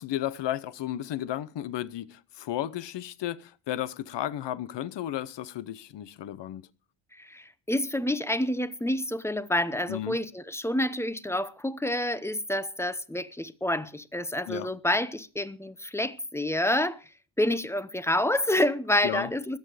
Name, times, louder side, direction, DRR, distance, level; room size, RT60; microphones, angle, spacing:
voice 1, 0.0-6.6 9.9-10.2 14.5-14.7 19.0-19.3, left 12 dB, 60° left, 1.0 m, -33 dB
voice 2, 7.1-17.1 17.4-19.6, left 1 dB, 5° left, 0.8 m, -28 dB
21.0 x 8.2 x 5.0 m
cardioid pair, 135°, 47 cm